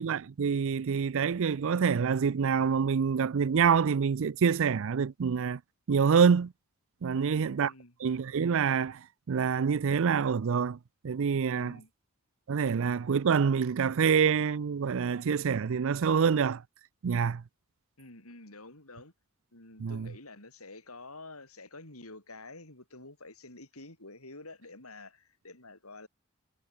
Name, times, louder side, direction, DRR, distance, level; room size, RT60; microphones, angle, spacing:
voice 1, 0.0-5.6 5.9-6.5 7.0-7.7 8.0-9.0 9.3-10.8 11.0-11.7 12.5-16.6 17.0-17.4 19.8-20.1, right 6 dB, 65° right, 0.4 m, -26 dB
voice 2, 7.1-8.0 11.5-11.9 12.7-12.8 18.0-19.1 19.5-26.1, left 2 dB, 80° left, 7.9 m, -49 dB
head